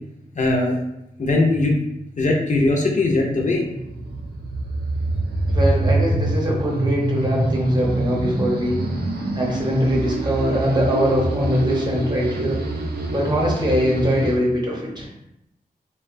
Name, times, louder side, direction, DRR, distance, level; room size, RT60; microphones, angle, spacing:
voice 1, 0.3-0.8 1.2-1.8 2.2-3.6, left 2 dB, 50° left, -1 dB, 0.6 m, -19 dB
sound 1, 3.1-14.4, right 2 dB, 85° right, 0.4 m, -25 dB
voice 2, 5.5-8.8 9.3-12.6 13.1-15.1, equal, 25° right, -3 dB, 0.8 m, -22 dB
2.5 x 2.2 x 2.5 m, 0.84 s
wide cardioid pair, 80°, 16 cm